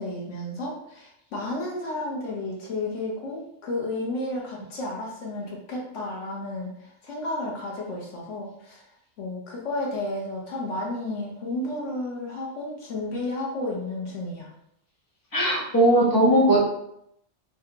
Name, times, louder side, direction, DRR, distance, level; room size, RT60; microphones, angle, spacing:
voice 1, 0.0-8.8 9.2-14.5, left 2 dB, 90° left, -2 dB, 1.3 m, -32 dB
voice 2, 15.3-16.6, right 1 dB, 20° left, -5 dB, 1.1 m, -19 dB
3.4 x 3.4 x 2.9 m, 0.75 s
omnidirectional pair, 1.2 m